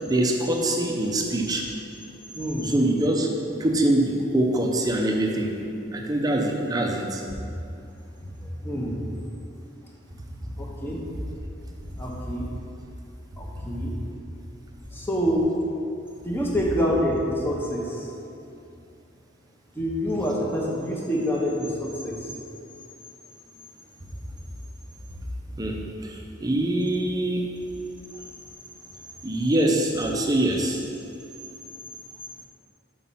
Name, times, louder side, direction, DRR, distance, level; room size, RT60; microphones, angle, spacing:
voice 1, 0.1-1.6 2.6-3.3 3.6-5.6 5.9-7.2 25.6-27.5 29.2-30.8, right 1 dB, 20° right, 1 dB, 0.6 m, -24 dB
voice 2, 2.3-2.7 8.2-8.3 8.6-9.2 10.6-11.0 12.0-12.5 13.4-13.9 14.9-15.5 16.2-18.1 19.8-22.3, equal, 10° left, -2 dB, 0.9 m, -27 dB
5.8 x 5.1 x 5.6 m, 2.6 s
head